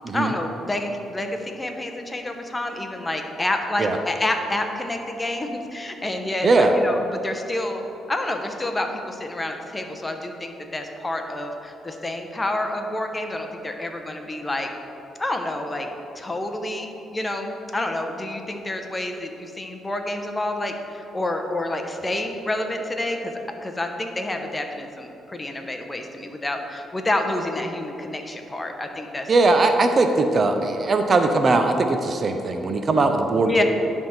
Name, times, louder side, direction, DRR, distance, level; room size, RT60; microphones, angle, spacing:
voice 1, 0.1-7.8 8.1-14.7 15.2-15.9 16.1-23.3 23.6-29.3 33.5-33.6, left 1 dB, 20° left, 4 dB, 0.8 m, -28 dB
voice 2, 29.3-33.6, right 3 dB, 40° right, 6 dB, 0.6 m, -20 dB
10.5 x 3.6 x 5.6 m, 3.0 s
cardioid pair, 90°, 0 cm